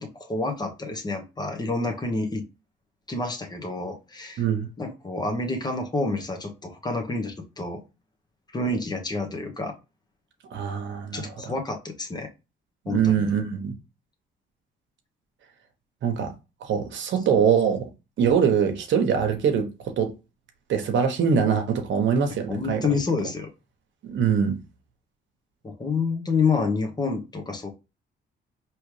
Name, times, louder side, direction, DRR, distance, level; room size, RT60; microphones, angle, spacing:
voice 1, 0.0-2.4 3.1-4.4 4.8-7.8 8.5-9.7 11.1-12.3 12.9-13.3 22.5-23.5 25.6-27.7, left 3 dB, 20° left, 1.0 m, -28 dB
voice 2, 4.4-4.7 10.5-11.5 12.9-13.7 16.0-16.3 16.6-17.9 18.2-20.1 20.7-23.0 24.0-24.6, right 7 dB, 70° right, 1.0 m, -23 dB
4.8 x 3.0 x 3.2 m
cardioid pair, 90°, 20 cm